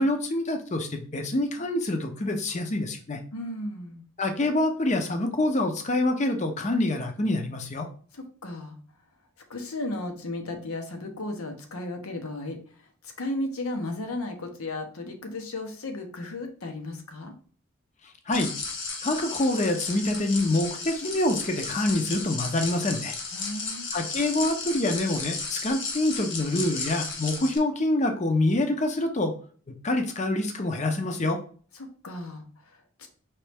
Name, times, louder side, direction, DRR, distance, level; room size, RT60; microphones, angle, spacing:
voice 1, 0.0-3.2 4.2-7.9 18.3-18.5 19.0-23.1 23.9-29.3 29.8-31.4, left 1 dB, 30° left, 5 dB, 0.6 m, -26 dB
voice 2, 3.3-4.1 8.1-8.8 9.5-12.6 13.0-17.3 23.3-23.9 31.7-33.1, left 2 dB, 80° left, 5 dB, 0.9 m, -35 dB
sound 1, 18.3-27.6, left 4 dB, 55° left, 0.9 m, -34 dB
4.4 x 3.1 x 3.4 m, 0.43 s
head